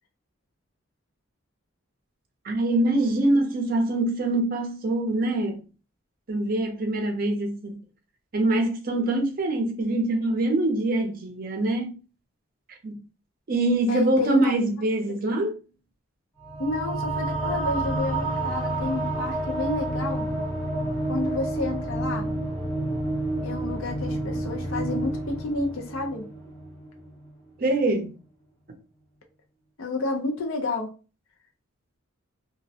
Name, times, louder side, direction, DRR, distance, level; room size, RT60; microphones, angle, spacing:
voice 1, 2.4-5.6 6.3-7.8 8.3-12.0 12.8-12.9 13.5-15.6 27.6-28.2, right 2 dB, 45° right, 0.5 m, -24 dB
voice 2, 13.9-14.5 16.6-20.3 21.1-22.3 23.4-26.3 29.8-30.9, left 2 dB, 75° left, 0.5 m, -30 dB
sound 1, 16.4-27.3, right 2 dB, 15° left, 0.7 m, -29 dB
2.2 x 2.0 x 2.6 m
head